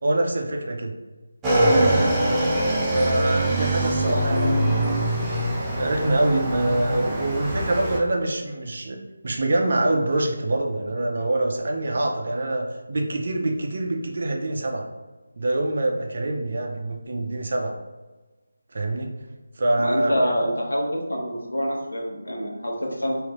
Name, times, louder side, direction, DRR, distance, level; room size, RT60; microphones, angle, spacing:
voice 1, 0.0-1.0 1.7-2.1 2.7-5.2 5.8-14.9 15.4-17.7 18.7-19.1 19.6-20.3, right 2 dB, 50° right, 2 dB, 0.6 m, -25 dB
Motorcycle / Engine, 1.4-8.0, right 1 dB, 10° right, 0.6 m, -23 dB
voice 2, 4.0-4.6 19.8-23.2, equal, 80° left, -2 dB, 1.2 m, -26 dB
3.1 x 3.1 x 3.6 m, 1.2 s
figure-of-eight pair, 160°, 0 cm